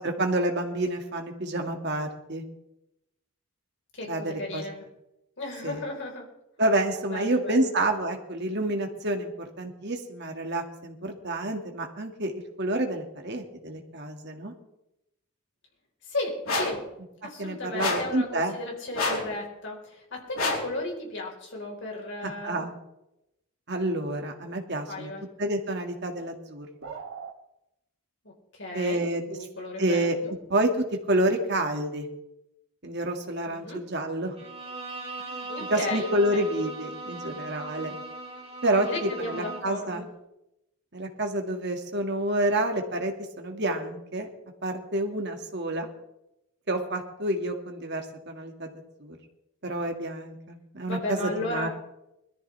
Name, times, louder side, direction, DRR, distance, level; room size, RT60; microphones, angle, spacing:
voice 1, 0.0-2.4 4.1-4.6 5.6-5.8 6.6-9.3 9.6-14.5 17.4-18.6 22.2-22.7 23.7-25.1 25.4-26.7 28.7-29.2 29.8-30.2 30.5-32.1 32.8-34.3 35.7-37.9 38.6-40.0 40.9-44.3 44.6-45.9 46.7-48.7 49.0-49.2 49.6-51.7, right 1 dB, 50° right, 4 dB, 2.0 m, -28 dB
voice 2, 3.9-4.8 5.4-6.3 7.1-7.7 16.0-16.8 17.2-22.7 24.9-25.2 28.2-30.3 33.5-33.8 35.5-36.5 38.7-40.0 50.9-51.7, left 2 dB, 55° left, -1 dB, 4.2 m, -35 dB
sound 1, 16.5-16.8 17.8-18.2 18.9-19.3 20.4-20.7, left 2 dB, 75° left, 3.7 m, -28 dB
sound 2, 26.8-27.4, right 6 dB, 70° right, 1.3 m, -39 dB
Bowed string instrument, 34.4-39.8, right 2 dB, 25° right, 2.4 m, -39 dB
22.0 x 13.5 x 3.4 m, 0.88 s
head